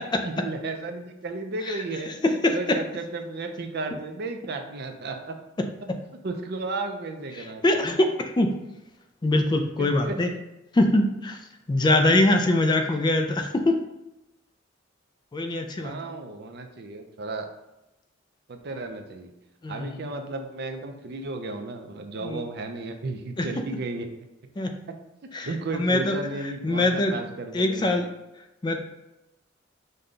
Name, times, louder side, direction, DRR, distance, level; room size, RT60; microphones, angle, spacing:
voice 1, 0.4-2.2 2.5-5.4 6.2-7.6 9.8-10.1 15.8-17.5 18.5-19.3 19.7-24.1 25.4-28.0, right 3 dB, 55° right, 5 dB, 0.5 m, -34 dB
voice 2, 1.6-2.8 7.4-8.5 9.2-10.3 10.7-11.4 11.7-13.8 15.3-16.0 19.6-20.0 22.2-22.4 23.4-23.5 24.6-24.7 25.3-26.2 26.4-27.2 27.5-28.1 28.6-28.8, left 2 dB, 20° left, 4 dB, 0.3 m, -23 dB
5.3 x 2.2 x 3.7 m, 0.94 s
head